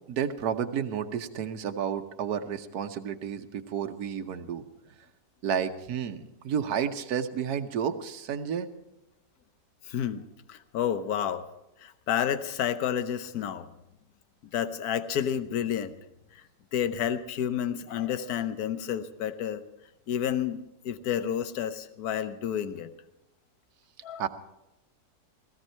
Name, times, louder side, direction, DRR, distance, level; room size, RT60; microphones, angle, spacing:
voice 1, 0.1-4.6 5.4-8.7 24.2-24.3, right 8 dB, 65° right, 7 dB, 1.4 m, -31 dB
voice 2, 9.9-11.4 11.8-13.7 14.5-15.9 16.3-16.4 16.7-19.6 20.1-22.9 24.0-24.3, left 9 dB, 65° left, 11 dB, 1.3 m, -30 dB
17.0 x 15.5 x 4.4 m, 0.91 s
omnidirectional pair, 1.8 m